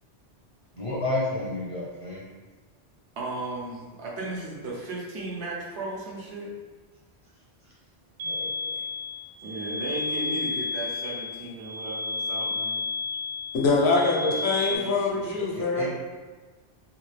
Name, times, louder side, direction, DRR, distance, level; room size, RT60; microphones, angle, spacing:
voice 1, 0.7-2.2 8.2-8.8 15.6-15.9, left 2 dB, 45° left, -6 dB, 0.4 m, -31 dB
voice 2, 3.2-6.5 9.4-12.8 14.2-14.4 14.7-15.2, right 2 dB, 85° right, -4 dB, 1.0 m, -35 dB
sound 1, 8.2-14.8, left 3 dB, 60° right, 0.6 m, -32 dB
voice 3, 13.5-15.9, left 3 dB, 75° left, -1 dB, 0.9 m, -24 dB
2.7 x 2.3 x 3.1 m, 1.3 s
omnidirectional pair, 1.1 m